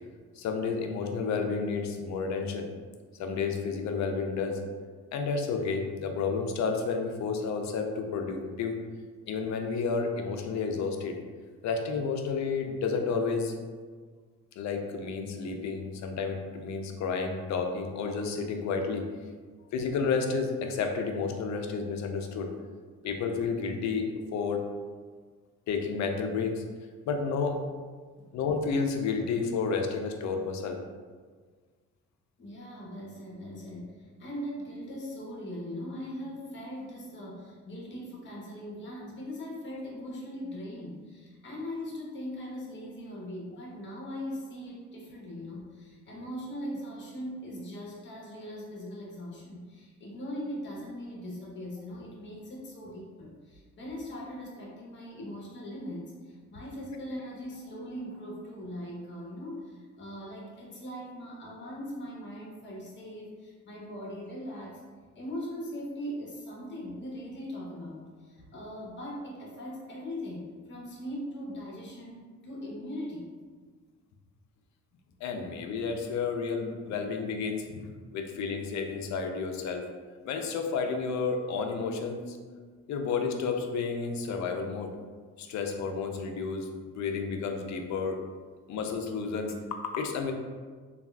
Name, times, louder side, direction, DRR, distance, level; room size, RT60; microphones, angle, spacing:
voice 1, 0.4-2.7 3.2-4.6 5.1-8.8 9.3-11.2 11.6-13.5 14.6-19.1 19.7-22.5 23.0-24.6 25.7-26.6 27.1-27.6 28.3-30.8 75.2-79.8 80.2-82.4 82.9-84.9 85.4-88.2 88.7-90.3, left 5 dB, 65° left, 4 dB, 0.5 m, -31 dB
voice 2, 32.4-64.8 65.1-73.3, equal, 40° left, -3 dB, 0.9 m, -40 dB
3.4 x 2.4 x 2.2 m, 1.5 s
cardioid pair, 90°, 30 cm